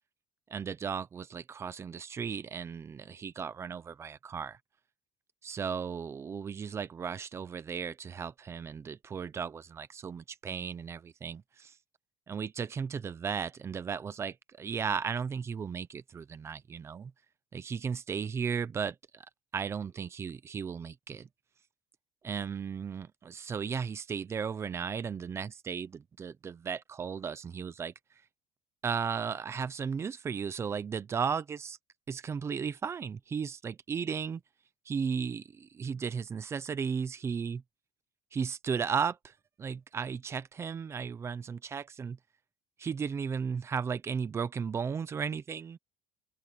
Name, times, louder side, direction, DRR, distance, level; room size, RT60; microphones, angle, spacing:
voice 1, 0.5-4.6 5.4-11.8 12.3-17.1 17.5-19.3 19.5-21.3 22.2-27.9 28.8-31.8 32.1-34.4 34.9-37.6 38.3-42.2 42.8-45.8, right 6 dB, 20° right, 0.7 m, -35 dB
open air
cardioid pair, 175°, 13 cm